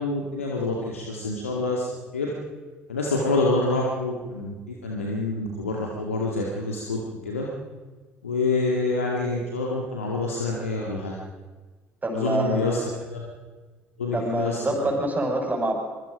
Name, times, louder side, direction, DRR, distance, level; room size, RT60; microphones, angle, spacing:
voice 1, 0.0-1.9 2.1-2.3 2.9-7.5 8.2-11.1 12.1-12.8 13.1-13.3 14.0-14.6, left 3 dB, 85° left, -2 dB, 2.3 m, -27 dB
voice 2, 12.0-12.8 14.1-15.8, right 1 dB, 25° right, 2 dB, 6.3 m, -26 dB
25.0 x 22.5 x 5.2 m, 1.3 s
figure-of-eight pair, 55°, 7 cm